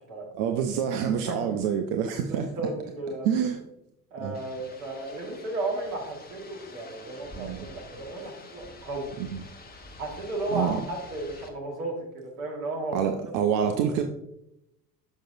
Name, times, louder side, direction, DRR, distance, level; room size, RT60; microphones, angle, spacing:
voice 1, 0.4-2.5 3.2-3.6 4.2-4.4 7.4-7.6 10.5-10.8 12.9-14.0, right 8 dB, 50° right, 5 dB, 0.6 m, -26 dB
voice 2, 1.1-1.6 2.3-3.3 4.1-9.1 10.0-13.0, right 2 dB, 65° right, 0 dB, 1.7 m, -34 dB
sound 1, 4.3-11.5, left 2 dB, 20° left, 1.0 m, -47 dB
6.3 x 6.2 x 2.6 m, 0.84 s
figure-of-eight pair, 60°, 45 cm